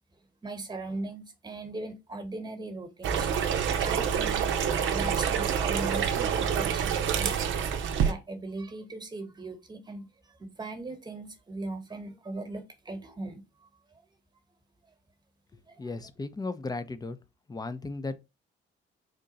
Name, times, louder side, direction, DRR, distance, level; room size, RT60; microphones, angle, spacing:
voice 1, 0.4-3.3 3.8-7.5 8.0-13.4 15.7-15.9, right 2 dB, 20° right, 1.1 m, -39 dB
sound 1, 3.0-8.1, right 7 dB, 75° right, 0.6 m, -27 dB
voice 2, 15.8-17.2 17.5-18.2, left 3 dB, 20° left, 0.5 m, -35 dB
3.8 x 2.2 x 3.9 m
cardioid pair, 90°, 20 cm